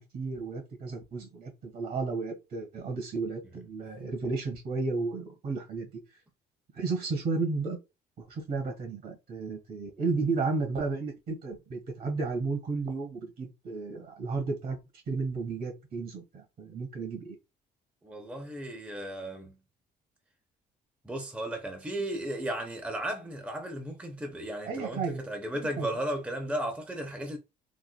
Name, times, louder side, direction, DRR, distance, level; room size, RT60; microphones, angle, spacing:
voice 1, 0.0-5.9 6.7-7.8 8.2-14.8 15.1-17.4 24.6-25.2 25.5-25.9, right 4 dB, 65° right, 1.7 m, -33 dB
voice 2, 18.0-19.6 21.0-27.4, right 1 dB, 10° right, 0.7 m, -35 dB
3.9 x 2.4 x 2.3 m
cardioid pair, 110°, 17 cm